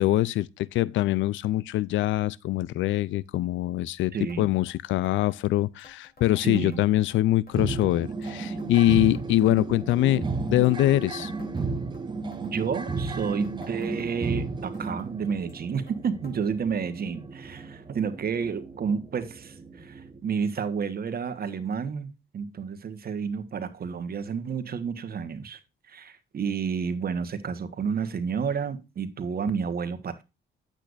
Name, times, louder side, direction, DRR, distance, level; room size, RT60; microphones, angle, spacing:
voice 1, 0.0-11.3, left 15 dB, 75° left, 0.4 m, -24 dB
voice 2, 4.1-4.5 6.4-6.8 12.4-25.6 25.9-30.2, right 6 dB, 50° right, 1.4 m, -30 dB
sound 1, 4.3-4.4 4.7-4.8 5.0-5.4 5.8-7.2 7.5-7.8 8.2-9.6 9.9-10.3 10.6-12.0 12.3-12.7 13.1-14.4 14.7-15.1 15.5-16.0 16.2-16.4 16.6-16.7 17.5-17.6 18.4-18.5, left 3 dB, 50° left, 3.4 m, -53 dB
sound 2, 7.5-20.2, right 3 dB, 20° right, 1.2 m, -34 dB
8.9 x 8.1 x 2.5 m
cardioid pair, 90°, 20 cm